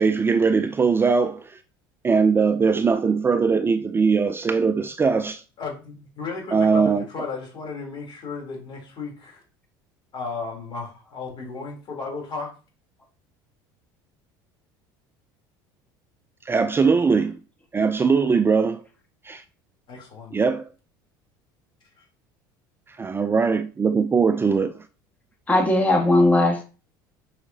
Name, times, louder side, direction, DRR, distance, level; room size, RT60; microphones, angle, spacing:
voice 1, 0.0-1.6 2.0-5.4 6.5-7.1 16.5-17.4 17.7-18.8 19.2-19.4 20.3-20.7 23.0-24.8, right 5 dB, 20° right, 0.4 m, -20 dB
voice 2, 5.6-9.4 10.1-12.5 19.9-20.3, left 4 dB, 45° left, 3.3 m, -34 dB
voice 3, 25.5-26.6, left 2 dB, 15° left, 1.6 m, -18 dB
7.7 x 4.9 x 2.8 m
hypercardioid pair, 80°, 11 cm